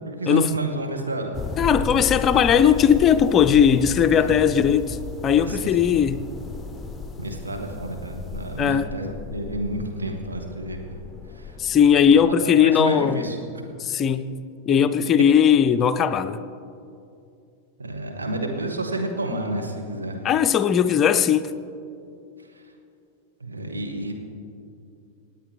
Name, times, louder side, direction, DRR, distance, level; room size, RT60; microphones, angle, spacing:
voice 1, 0.0-1.4 4.1-4.4 5.4-5.8 7.2-11.0 11.3-11.6 12.0-13.6 17.8-20.2 22.4-22.7 23.4-24.1, right 2 dB, 75° right, 1.7 m, -30 dB
sound 1, 1.3-12.3, left 3 dB, 10° left, 0.8 m, -35 dB
voice 2, 1.6-6.3 8.6-8.9 11.6-13.2 13.8-16.4 20.2-21.5, left 8 dB, 30° left, 0.5 m, -18 dB
27.0 x 9.1 x 3.5 m
figure-of-eight pair, 90°, 0 cm